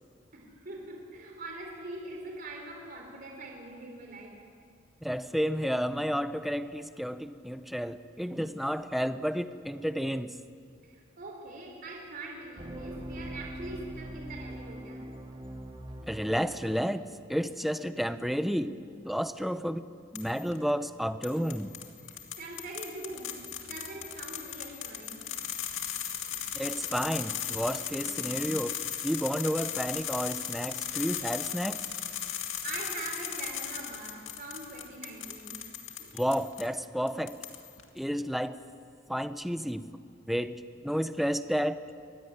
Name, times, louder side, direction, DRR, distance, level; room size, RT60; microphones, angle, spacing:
voice 1, 0.3-4.4 10.8-15.1 22.0-23.4 23.7-25.3 26.3-26.5 28.0-28.2 32.6-35.6 36.0-36.2, right 2 dB, 45° right, 1 dB, 3.6 m, -43 dB
voice 2, 5.0-10.4 16.1-17.0 17.3-18.8 19.0-21.7 26.5-28.8 29.0-31.8 36.2-37.4 37.9-38.6 39.1-39.9 40.3-41.8, equal, ahead, 11 dB, 0.6 m, -31 dB
sound 1, 12.6-16.5, right 1 dB, 25° right, 2.3 m, -42 dB
sound 2, 20.2-20.6 21.2-36.7 37.1-37.8, left 10 dB, 80° left, 2.2 m, -37 dB
23.5 x 17.0 x 9.7 m, 2.3 s
head